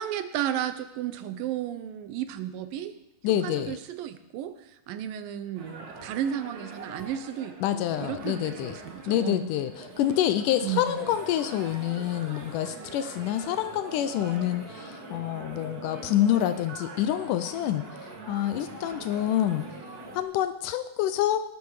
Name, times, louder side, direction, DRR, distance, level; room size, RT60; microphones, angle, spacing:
voice 1, 0.0-2.9 3.4-9.5 10.6-11.1, right 10 dB, 70° right, 11 dB, 2.5 m, -33 dB
voice 2, 3.2-3.8 7.6-8.7 9.1-19.7 20.1-21.4, left 11 dB, 85° left, 11 dB, 1.8 m, -27 dB
sound 1, 5.5-20.2, right 2 dB, 35° right, 1.6 m, -43 dB
19.5 x 12.0 x 4.9 m, 0.85 s
omnidirectional pair, 4.5 m